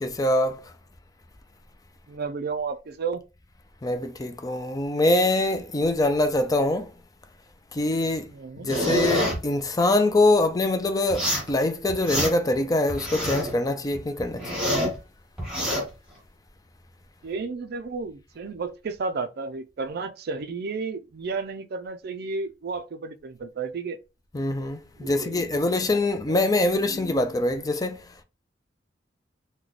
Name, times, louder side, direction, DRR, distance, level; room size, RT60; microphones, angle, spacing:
voice 1, 0.0-0.6 3.8-6.9 7.7-8.3 8.6-14.5 24.3-28.1, left 2 dB, 20° left, 0.4 m, -24 dB
voice 2, 2.1-3.2 8.3-8.7 17.2-24.0 25.0-25.8 26.3-26.4 26.9-27.2, right 4 dB, 60° right, 0.4 m, -33 dB
sound 1, 8.7-9.4 11.1-11.5 11.9-12.5 12.9-13.5 13.9-15.0 15.4-15.8, equal, 5° right, 1.1 m, -26 dB
3.0 x 2.2 x 3.9 m
head